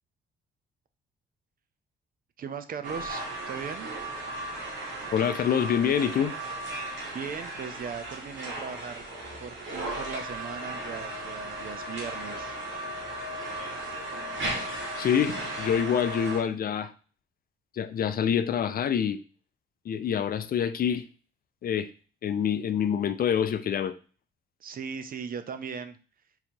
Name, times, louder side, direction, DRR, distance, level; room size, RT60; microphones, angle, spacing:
voice 1, 2.4-3.9 7.1-9.0 9.4-12.5 24.6-26.0, right 6 dB, 45° right, 10 dB, 0.5 m, -38 dB
sound 1, 2.8-16.4, right 1 dB, 70° right, 1.8 m, -36 dB
voice 2, 5.1-6.3 15.0-16.9 17.7-19.2 19.9-21.0 21.6-21.9 22.2-23.9, left 8 dB, 50° left, 12 dB, 0.4 m, -26 dB
3.9 x 2.8 x 4.4 m, 0.37 s
cardioid pair, 90°, 20 cm